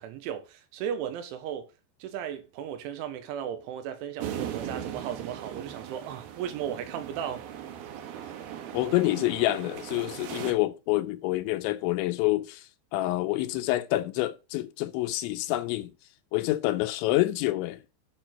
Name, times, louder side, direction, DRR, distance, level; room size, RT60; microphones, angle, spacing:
voice 1, 0.0-1.7 2.0-7.5, right 9 dB, 90° right, 3.5 m, -36 dB
sound 1, 4.2-10.5, right 10 dB, 65° right, 2.6 m, -38 dB
voice 2, 8.7-15.9 16.3-17.8, left 17 dB, 80° left, 2.9 m, -27 dB
10.0 x 4.6 x 5.9 m
omnidirectional pair, 5.5 m